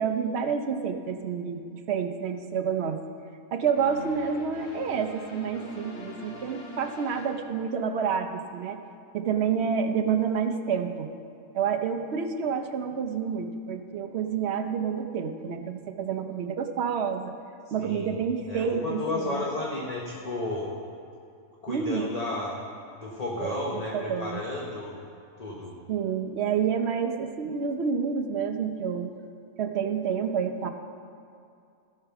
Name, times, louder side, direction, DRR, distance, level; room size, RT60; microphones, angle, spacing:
voice 1, 0.0-3.0 3.5-8.8 9.1-11.1 11.5-17.3 17.7-19.5 21.7-22.2 23.4-23.5 23.9-24.4 25.9-29.1 29.6-30.7, right 6 dB, 55° right, 7 dB, 0.9 m, -29 dB
sound 1, 3.7-8.2, left 2 dB, 55° left, 2.2 m, -44 dB
voice 2, 17.8-18.2 18.5-20.7 21.6-22.6 23.0-25.0 25.4-25.7, left 2 dB, 30° left, -3 dB, 1.2 m, -32 dB
16.0 x 5.9 x 5.8 m, 2.5 s
omnidirectional pair, 1.5 m